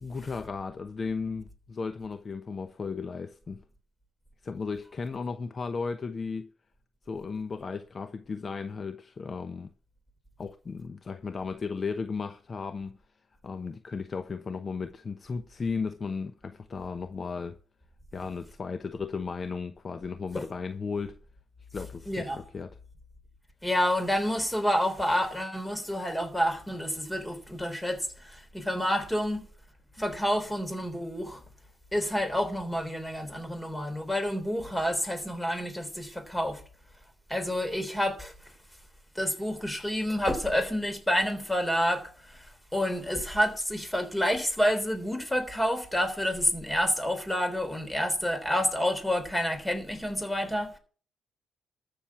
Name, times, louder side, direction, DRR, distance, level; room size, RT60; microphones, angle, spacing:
voice 1, 0.0-3.6 4.4-6.5 7.1-9.7 10.4-13.0 13.4-17.6 18.1-21.2 21.7-22.7, left 5 dB, 40° left, 0.9 m, -35 dB
voice 2, 22.1-22.4 23.6-29.4 30.0-31.4 31.9-36.6 37.3-38.3 39.1-42.5 42.7-50.7, equal, 10° left, 3.3 m, -29 dB
13.5 x 6.8 x 7.2 m
cardioid pair, 90°, 0 cm